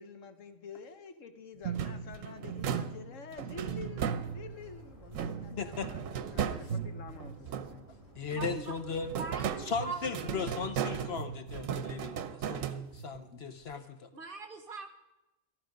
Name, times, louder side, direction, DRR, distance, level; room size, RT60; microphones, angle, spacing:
voice 1, 0.0-7.9 13.3-13.4, left 5 dB, 75° left, 8 dB, 1.4 m, -48 dB
sound 1, 1.6-4.7 5.1-8.0 8.3-13.2, right 8 dB, 80° right, 1.1 m, -36 dB
sound 2, 3.5-11.3, right 1 dB, 25° right, 5.5 m, -53 dB
voice 2, 5.5-5.9 8.2-9.2 9.6-14.1, left 5 dB, 55° left, 9 dB, 1.0 m, -37 dB
voice 3, 8.4-8.7 9.2-10.0 14.1-14.9, right 4 dB, 45° right, 7 dB, 1.3 m, -41 dB
13.5 x 12.0 x 5.2 m, 0.98 s
omnidirectional pair, 1.3 m